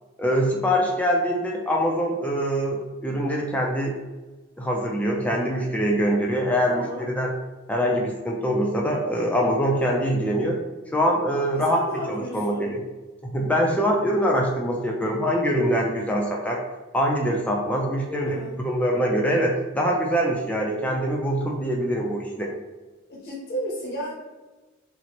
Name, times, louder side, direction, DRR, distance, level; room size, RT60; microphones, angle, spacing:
voice 1, 0.2-4.0 4.6-7.3 7.7-10.6 10.9-11.8 12.1-12.8 13.3-16.6 16.9-22.5, equal, 5° left, -1 dB, 0.3 m, -24 dB
voice 2, 6.7-7.1 11.5-12.7 18.1-18.6 23.1-24.1, equal, 55° left, -4 dB, 0.7 m, -33 dB
4.0 x 2.0 x 2.8 m, 1.2 s
head